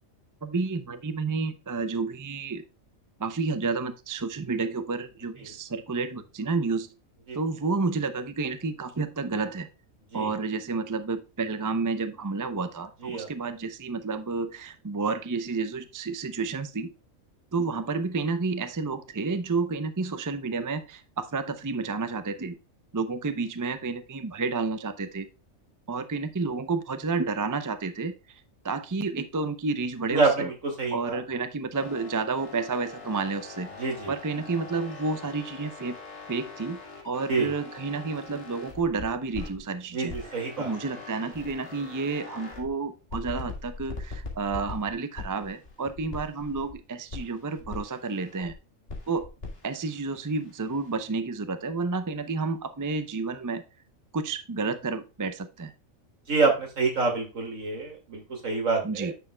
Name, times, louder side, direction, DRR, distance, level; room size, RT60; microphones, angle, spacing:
voice 1, 0.4-2.6 3.2-6.9 7.3-9.7 10.1-16.9 17.5-22.6 22.9-25.3 25.9-28.4 28.6-30.5 30.9-33.7 34.1-36.0 36.3-36.8 37.1-40.1 40.6-48.5 49.1-49.3 49.6-53.6 54.1-55.7 58.8-59.1, right 4 dB, 25° right, 10 dB, 0.4 m, -30 dB
voice 2, 30.1-31.2 33.8-34.1 37.3-37.5 39.9-40.7 56.3-59.1, right 4 dB, 70° right, 2 dB, 2.8 m, -27 dB
sound 1, 31.7-39.6 40.1-42.7 43.1-46.7 47.1-48.5 48.9-50.9, left 3 dB, 45° left, 2.1 m, -42 dB
9.1 x 6.6 x 2.3 m, 0.30 s
omnidirectional pair, 1.4 m